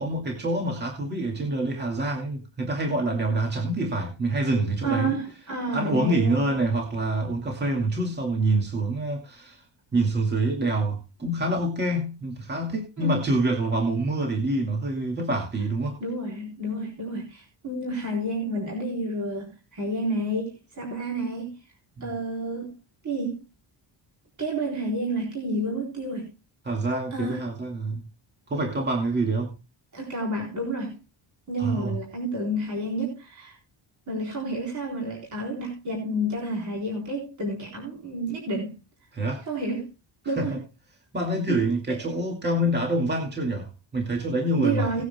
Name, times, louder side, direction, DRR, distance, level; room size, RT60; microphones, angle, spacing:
voice 1, 0.0-5.1 5.7-9.6 9.9-16.0 22.0-22.1 26.6-28.0 28.5-29.5 31.6-31.9 39.1-39.4 40.4-40.6 41.1-45.0, right 2 dB, 20° right, 2.3 m, -26 dB
voice 2, 4.8-6.5 13.0-13.1 16.0-21.5 22.0-22.7 23.0-23.4 24.4-26.3 27.1-27.4 29.9-31.0 31.5-33.6 34.1-38.7 39.5-39.9 40.3-40.6 41.5-41.6 41.9-42.0 44.5-45.0, right 1 dB, 40° right, 4.0 m, -30 dB
19.0 x 9.6 x 2.2 m
wide cardioid pair, 160°, 47 cm